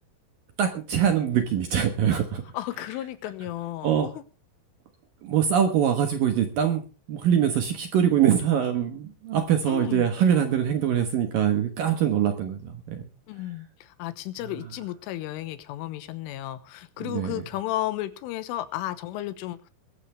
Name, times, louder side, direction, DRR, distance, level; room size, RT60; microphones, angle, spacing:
voice 1, 0.6-2.5 3.8-4.1 5.2-6.8 7.1-13.1 14.4-14.5 17.0-17.4, right 9 dB, 65° right, 7 dB, 2.3 m, -23 dB
voice 2, 2.5-4.1 9.7-10.1 13.3-13.7 14.0-19.7, left 14 dB, 85° left, 14 dB, 3.6 m, -33 dB
21.5 x 12.0 x 3.4 m, 0.33 s
omnidirectional pair, 5.6 m